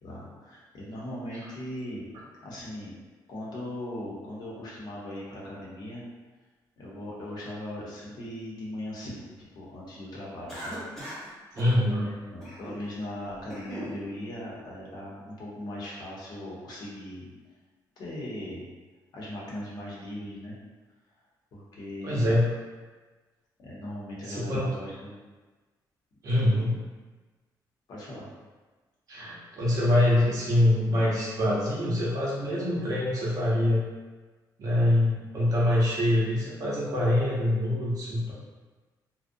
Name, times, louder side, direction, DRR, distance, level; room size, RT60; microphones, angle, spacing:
voice 1, 0.0-2.0 2.4-2.9 3.3-6.0 6.8-9.2 9.5-10.8 12.0-17.3 18.0-18.7 19.1-20.6 21.5-22.3 23.6-25.1 26.4-26.7 27.9-28.3, left 1 dB, 60° left, -5 dB, 0.7 m, -39 dB
Cough, 10.5-11.3 11.6-11.8 12.4-12.8 13.3-14.0, equal, 5° left, 0.7 m, -39 dB
voice 2, 11.5-12.1 22.0-22.5 24.2-24.6 26.2-26.7 29.1-33.8 34.6-38.3, left 1 dB, 50° right, -6 dB, 0.7 m, -24 dB
2.4 x 2.0 x 2.5 m, 1.3 s
cardioid pair, 150°, 8 cm